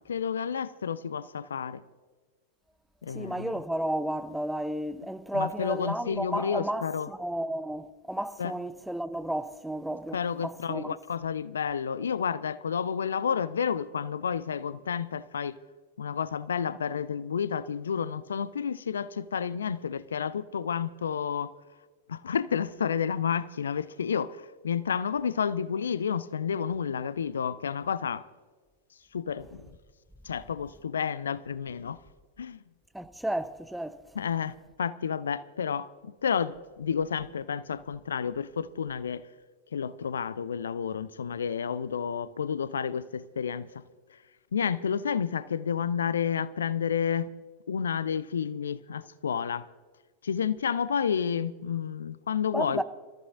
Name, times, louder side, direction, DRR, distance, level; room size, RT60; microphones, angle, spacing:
voice 1, 0.0-1.8 3.0-3.5 5.3-7.1 8.4-8.5 10.1-15.6 16.0-21.5 22.1-28.3 29.1-29.5 30.2-32.0 32.4-32.6 34.2-39.3 39.7-43.8 44.1-44.2 44.5-47.3 47.7-49.7 50.2-52.8, left 7 dB, 70° left, 0.5 m, -30 dB
voice 2, 3.1-11.0 32.9-34.0 52.5-52.8, right 1 dB, 5° right, 0.7 m, -32 dB
27.5 x 14.0 x 2.6 m
figure-of-eight pair, 90°, 0 cm